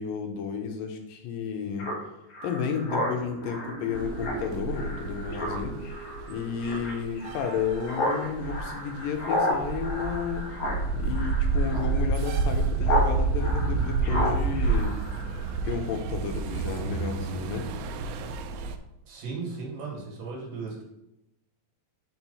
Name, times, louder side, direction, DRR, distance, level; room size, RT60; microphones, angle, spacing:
voice 1, 0.0-1.9 2.4-5.8 6.3-10.5 10.9-15.0 15.6-17.7, left 6 dB, 80° left, 4 dB, 2.4 m, -32 dB
Speech synthesizer, 1.8-13.1 13.4-15.6, left 1 dB, 55° left, 2.6 m, -33 dB
sound 1, 2.7-7.8, right 3 dB, 55° right, 1.1 m, -43 dB
sound 2, 4.0-18.8, right 4 dB, 85° right, 2.4 m, -29 dB
voice 2, 19.1-20.8, right 4 dB, 70° right, -1 dB, 3.2 m, -36 dB
5.9 x 4.5 x 5.5 m, 0.87 s
omnidirectional pair, 4.1 m